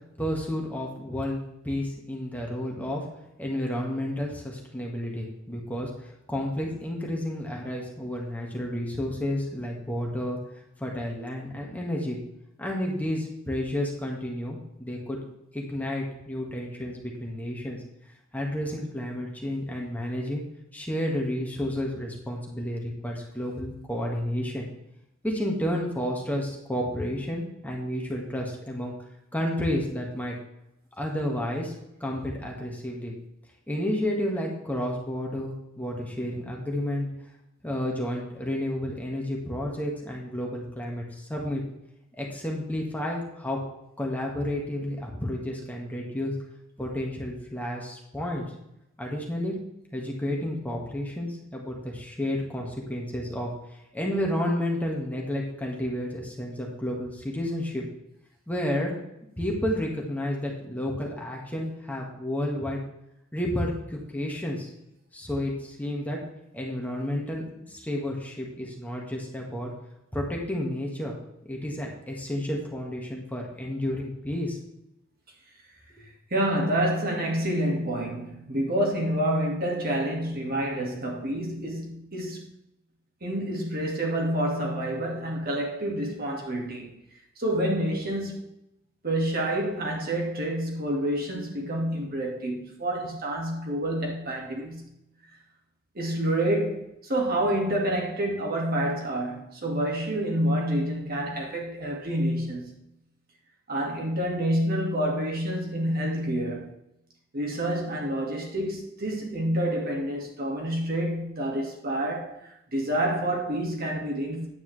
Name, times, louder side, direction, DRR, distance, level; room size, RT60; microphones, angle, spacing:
voice 1, 0.2-3.0 3.4-10.4 10.8-12.2 12.6-15.2 15.5-17.8 18.3-20.4 20.7-24.7 25.2-29.0 29.3-30.4 31.0-31.7 32.0-33.1 33.7-37.1 37.6-41.6 42.1-43.6 44.0-46.3 46.8-48.5 49.0-49.5 49.9-53.5 53.9-57.8 58.5-58.9 59.4-62.8 63.3-64.7 65.1-66.2 66.5-69.7 70.1-71.2 71.5-74.6, left 1 dB, 10° left, 1.8 m, -31 dB
voice 2, 76.3-82.5 83.2-87.0 87.4-88.5 89.0-94.9 96.0-102.8 103.7-106.8 107.3-114.5, right 1 dB, 50° right, 2.0 m, -28 dB
9.7 x 8.6 x 3.3 m
head